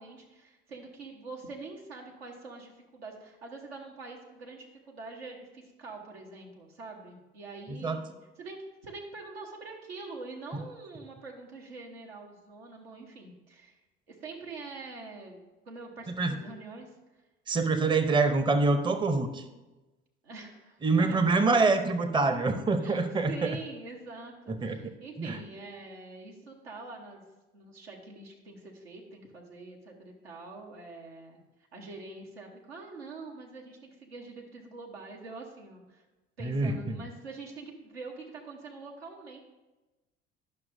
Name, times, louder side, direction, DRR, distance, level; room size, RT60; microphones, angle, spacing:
voice 1, 0.0-13.8 14.1-16.9 20.2-21.4 22.8-27.2 27.5-31.4 31.7-36.0 36.4-39.4, right 3 dB, 80° right, 0 dB, 1.1 m, -45 dB
voice 2, 17.5-19.4 20.8-23.5 24.5-24.8 25.2-25.4 36.4-37.0, right 3 dB, 15° right, 9 dB, 0.6 m, -25 dB
10.5 x 5.8 x 2.6 m, 1.1 s
figure-of-eight pair, 60°, 30 cm